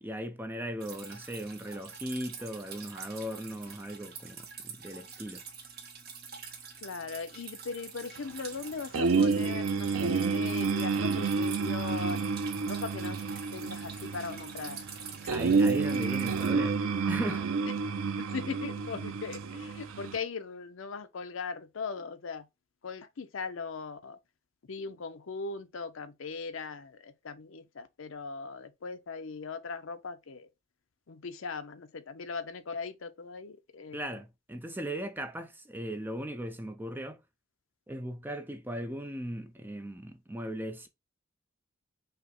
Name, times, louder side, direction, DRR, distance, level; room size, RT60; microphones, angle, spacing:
voice 1, 0.0-5.4 15.3-16.8 17.1-17.5 33.9-37.2 37.9-40.9, right 1 dB, 10° right, 0.5 m, -38 dB
Drip, 0.8-16.5, right 6 dB, 50° right, 1.0 m, -46 dB
voice 2, 6.8-12.2 12.6-13.2 13.5-14.8 15.2-15.3 18.0-22.5 22.8-24.2 24.6-30.5 31.1-34.1, left 4 dB, 65° left, 0.6 m, -39 dB
sound 1, 8.9-20.2, right 4 dB, 85° right, 0.5 m, -30 dB
5.6 x 2.1 x 3.8 m
head